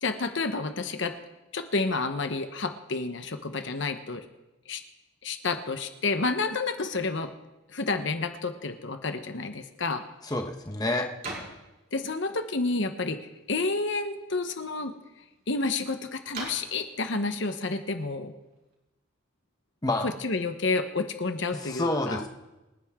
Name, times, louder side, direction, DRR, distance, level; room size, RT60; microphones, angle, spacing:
voice 1, 0.0-1.1 1.5-4.2 4.7-4.8 5.2-7.3 7.7-10.0 11.9-13.2 13.5-14.9 15.5-18.3 20.0-22.2, left 3 dB, 60° left, 8 dB, 1.0 m, -30 dB
sound 1, 9.6-18.7, right 2 dB, 45° right, 4.4 m, -47 dB
voice 2, 10.2-11.1 19.8-20.1 21.6-22.3, left 2 dB, 20° left, 3 dB, 1.1 m, -28 dB
28.5 x 10.5 x 3.7 m, 1.0 s
head